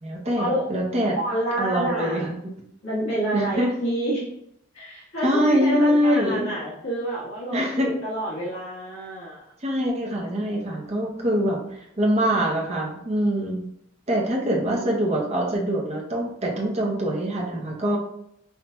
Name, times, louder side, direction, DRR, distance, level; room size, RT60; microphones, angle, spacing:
voice 1, 0.0-1.2 1.6-2.5 3.3-3.7 5.2-6.5 7.5-7.9 9.6-13.6 14.1-18.0, equal, 35° right, -2 dB, 0.8 m, -24 dB
voice 2, 1.2-2.3 2.8-4.2 4.7-9.4 14.7-14.9, right 1 dB, 65° left, -9 dB, 1.4 m, -28 dB
5.8 x 2.8 x 2.2 m, 0.75 s
head